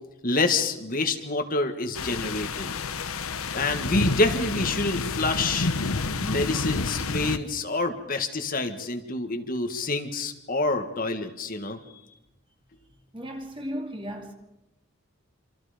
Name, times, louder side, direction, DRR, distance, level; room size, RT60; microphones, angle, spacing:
voice 1, 0.2-2.7 3.5-5.7 6.2-11.8, left 3 dB, 40° left, 1.8 m, -27 dB
sound 1, 1.9-7.4, left 3 dB, 80° left, 1.1 m, -29 dB
voice 2, 13.1-14.3, equal, 25° right, 2.8 m, -36 dB
27.5 x 27.5 x 5.2 m
head